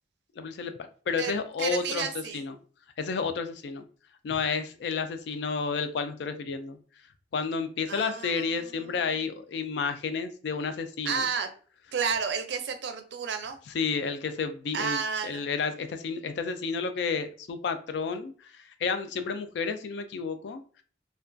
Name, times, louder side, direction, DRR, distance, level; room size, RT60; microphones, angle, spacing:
voice 1, 0.4-0.7 1.1-2.6 3.0-3.8 4.2-6.8 7.3-11.3 13.7-20.6, left 5 dB, 70° left, 9 dB, 0.3 m, -31 dB
voice 2, 1.6-2.4 7.9-8.9 11.0-11.5 11.9-13.6 14.7-15.5, right 6 dB, 70° right, 6 dB, 0.4 m, -31 dB
2.2 x 2.2 x 2.5 m, 0.42 s
head